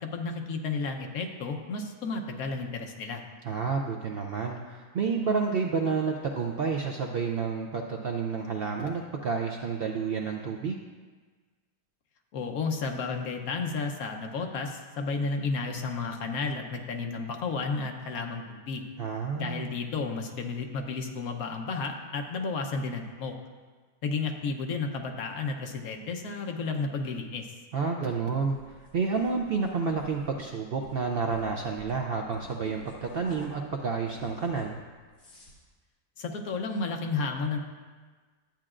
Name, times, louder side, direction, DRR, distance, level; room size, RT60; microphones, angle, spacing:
voice 1, 0.0-3.2 12.3-18.8 19.4-23.4 24.0-27.5 36.2-37.6, left 4 dB, 75° left, 4 dB, 1.3 m, -32 dB
voice 2, 3.4-10.8 19.0-19.7 27.7-34.8, right 5 dB, 65° right, 2 dB, 0.6 m, -30 dB
sound 1, 28.4-33.7 34.1-35.6, left 1 dB, 50° left, 2.0 m, -49 dB
12.0 x 8.7 x 2.5 m, 1.4 s
omnidirectional pair, 1.5 m